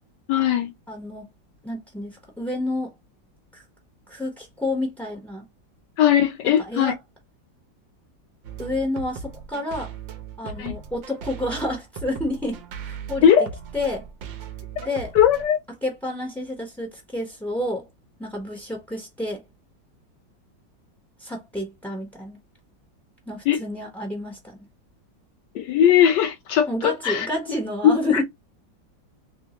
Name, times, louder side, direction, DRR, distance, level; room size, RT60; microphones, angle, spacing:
voice 1, 0.3-0.7 6.0-6.9 10.6-10.7 13.2-13.5 15.1-15.6 23.4-23.6 25.5-27.3 27.8-28.2, left 9 dB, 70° left, 1.3 m, -19 dB
voice 2, 0.9-1.3 1.6-2.9 3.5-3.6 4.1-5.4 6.6-6.9 8.6-9.9 10.4-13.3 13.7-14.1 14.8-15.1 15.8-17.9 18.2-19.4 21.2-22.4 23.3-24.7 26.7-28.2, left 1 dB, ahead, 0.6 m, -29 dB
sound 1, 8.4-15.4, right 6 dB, 80° right, 1.5 m, -38 dB
3.6 x 3.3 x 2.9 m
omnidirectional pair, 2.0 m